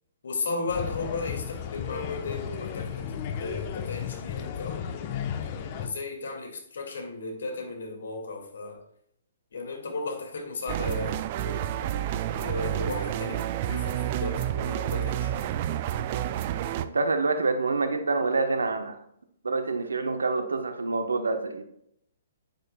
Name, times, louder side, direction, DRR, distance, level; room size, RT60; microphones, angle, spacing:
voice 1, 0.2-5.1 5.8-8.8 9.5-11.7 12.3-15.5, left 3 dB, 70° left, 3 dB, 2.3 m, -35 dB
sound 1, 0.7-5.9, left 8 dB, 40° left, 1.0 m, -34 dB
sound 2, 10.7-16.9, right 11 dB, 40° right, 0.5 m, -29 dB
voice 2, 16.8-19.0 19.4-21.6, right 3 dB, 75° right, 7 dB, 1.1 m, -27 dB
9.4 x 9.2 x 2.3 m, 0.73 s
figure-of-eight pair, 125°, 0 cm